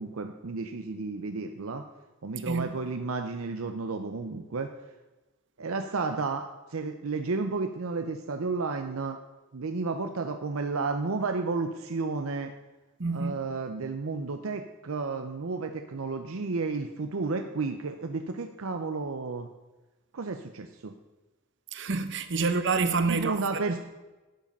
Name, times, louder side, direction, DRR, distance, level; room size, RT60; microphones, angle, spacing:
voice 1, 0.0-1.8 2.2-4.7 5.6-9.2 9.5-12.5 13.1-19.5 20.1-20.9 23.1-23.8, right 4 dB, 85° right, 0.7 m, -32 dB
voice 2, 13.0-13.4 21.7-23.4 23.7-23.8, right 4 dB, 60° right, 0.9 m, -27 dB
11.5 x 7.5 x 5.4 m
head